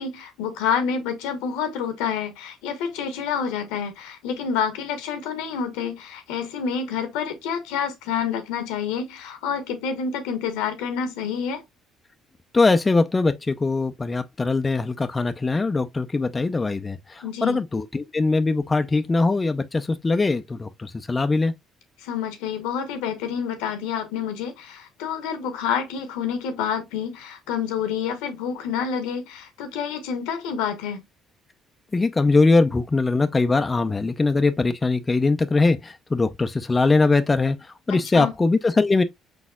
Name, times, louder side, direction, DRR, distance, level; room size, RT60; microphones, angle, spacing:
voice 1, 0.0-11.6 17.2-17.6 22.0-31.0 37.9-38.3, left 7 dB, 85° left, 1.0 m, -28 dB
voice 2, 12.5-21.5 31.9-37.6 37.9-39.0, left 3 dB, 25° left, 0.6 m, -21 dB
5.1 x 4.1 x 2.3 m
supercardioid pair, 65°, 0 cm